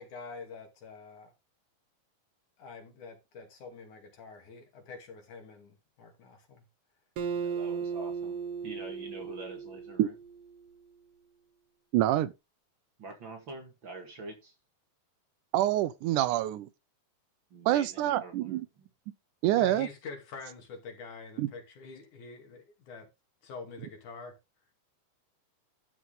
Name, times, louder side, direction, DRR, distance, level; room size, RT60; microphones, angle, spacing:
voice 1, 0.0-1.3 2.6-6.6 19.5-23.1 23.4-24.4, left 4 dB, 65° left, 4.0 m, -46 dB
Acoustic guitar, 7.2-10.6, right 6 dB, 60° right, 1.6 m, -36 dB
voice 2, 7.3-10.1 13.0-14.5 17.5-18.9, right 3 dB, 40° right, 2.3 m, -45 dB
voice 3, 11.9-12.3 15.5-16.7 17.7-18.7 19.4-19.9 21.4-21.5, right 13 dB, 80° right, 2.1 m, -26 dB
12.5 x 5.8 x 3.9 m
omnidirectional pair, 3.7 m